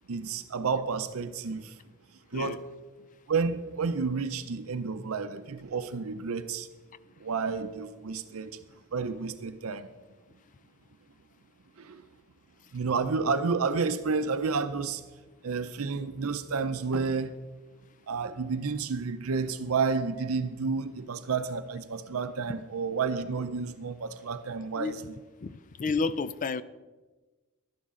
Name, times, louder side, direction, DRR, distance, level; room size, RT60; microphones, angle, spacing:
voice 1, 0.1-1.7 2.3-2.6 3.3-6.7 7.2-8.5 8.9-9.9 11.8-12.0 12.7-15.0 15.4-17.3 18.1-25.0, right 5 dB, 75° right, 10 dB, 0.6 m, -30 dB
voice 2, 25.4-26.6, left 4 dB, 40° left, 16 dB, 0.4 m, -31 dB
12.0 x 11.0 x 3.7 m, 1.2 s
head